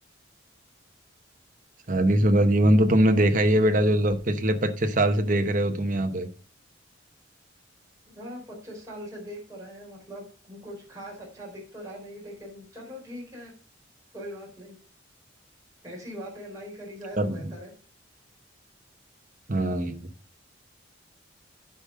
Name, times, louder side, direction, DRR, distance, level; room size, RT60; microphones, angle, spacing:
voice 1, 1.9-6.3 17.2-17.3 19.5-20.1, right 1 dB, 40° right, 7 dB, 0.9 m, -22 dB
voice 2, 8.1-13.5 14.1-14.8 15.8-17.7, equal, 15° right, -3 dB, 4.1 m, -41 dB
9.3 x 5.1 x 5.3 m, 0.39 s
head